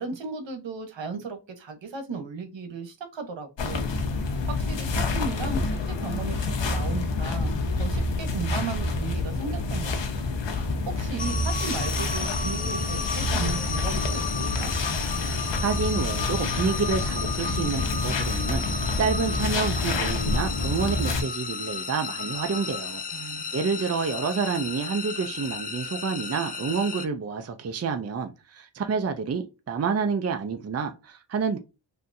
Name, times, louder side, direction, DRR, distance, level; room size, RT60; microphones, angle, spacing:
voice 1, 0.0-3.9 4.5-10.3 10.9-14.7 23.1-23.5, right 4 dB, 80° right, 1.0 m, -36 dB
sound 1, 3.6-21.2, left 3 dB, 80° left, 0.8 m, -28 dB
sound 2, 11.2-27.1, left 5 dB, 20° left, 0.4 m, -33 dB
voice 2, 15.6-23.0 23.5-31.6, right 5 dB, 35° right, 0.5 m, -28 dB
3.4 x 2.8 x 2.5 m
wide cardioid pair, 105°, 44 cm